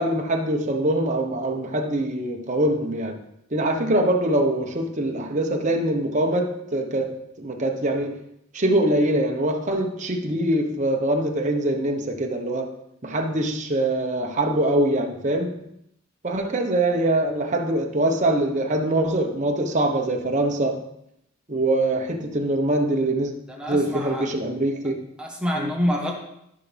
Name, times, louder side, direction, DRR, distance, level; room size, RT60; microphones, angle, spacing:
voice 1, 0.0-3.2 3.5-8.2 8.5-12.8 13.0-15.6 16.2-20.8 21.5-23.3 23.7-25.0 25.5-25.7, right 1 dB, 35° right, 1.1 m, -23 dB
voice 2, 23.5-24.3 25.2-26.1, equal, 5° right, 1.2 m, -26 dB
13.5 x 6.0 x 3.5 m
head